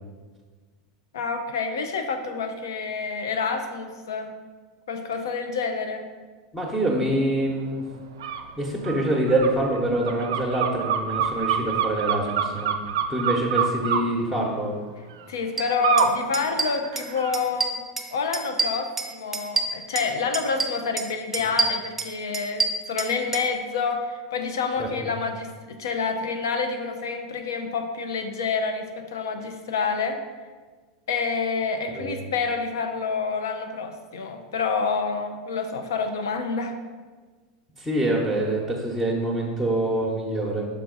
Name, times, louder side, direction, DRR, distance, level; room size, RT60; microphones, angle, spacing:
voice 1, 1.1-4.3 4.9-6.1 15.3-17.8 18.1-30.2 31.1-36.7, left 5 dB, 70° left, 6 dB, 0.6 m, -28 dB
voice 2, 6.5-7.9 8.6-12.7 13.1-14.7 24.8-24.9 31.9-32.2 37.8-40.7, right 1 dB, 5° left, -4 dB, 1.0 m, -25 dB
sound 1, 8.2-8.4 8.8-14.0 15.8-16.1 16.6-17.3, right 8 dB, 70° right, 0.4 m, -26 dB
sound 2, 15.6-15.7 16.0-16.1 16.3-17.1 17.3-18.1 18.3-20.1 20.3-21.1 21.3-23.4, right 4 dB, 15° right, 0.7 m, -27 dB
6.0 x 4.6 x 3.9 m, 1.4 s
figure-of-eight pair, 85°, 2 cm